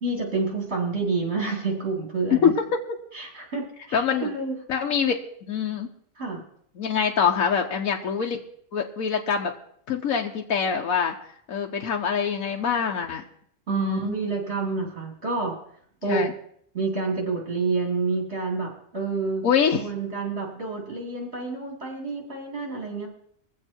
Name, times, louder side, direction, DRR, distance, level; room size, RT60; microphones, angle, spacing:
voice 1, 0.0-2.5 3.1-4.6 6.2-6.4 13.7-15.6 16.0-16.3 16.7-19.4 19.8-23.1, right 3 dB, 50° right, 0 dB, 3.5 m, -28 dB
voice 2, 2.3-2.8 3.9-4.3 4.7-5.2 5.5-5.9 6.8-8.4 8.7-9.5 9.9-11.1 11.5-13.2 13.7-14.1 16.1-16.3 19.4-19.9, left 7 dB, 85° left, 2 dB, 1.4 m, -24 dB
22.0 x 7.6 x 4.5 m, 0.64 s
omnidirectional pair, 1.4 m